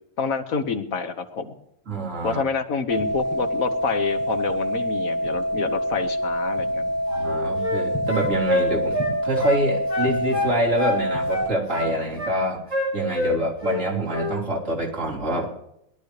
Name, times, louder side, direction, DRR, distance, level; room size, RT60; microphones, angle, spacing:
voice 1, 0.2-1.5 2.2-6.9, left 5 dB, 85° left, 8 dB, 1.6 m, -27 dB
voice 2, 1.9-2.4 7.1-12.6 12.9-15.5, right 1 dB, 65° right, -2 dB, 3.5 m, -26 dB
sound 1, 2.9-11.5, equal, 15° left, 4.8 m, -26 dB
sound 2, 7.1-9.6 9.9-11.0 11.3-12.3 12.7-13.8 14.1-14.3, left 2 dB, 25° right, 5.8 m, -27 dB
21.0 x 12.0 x 3.3 m, 0.78 s
omnidirectional pair, 1.4 m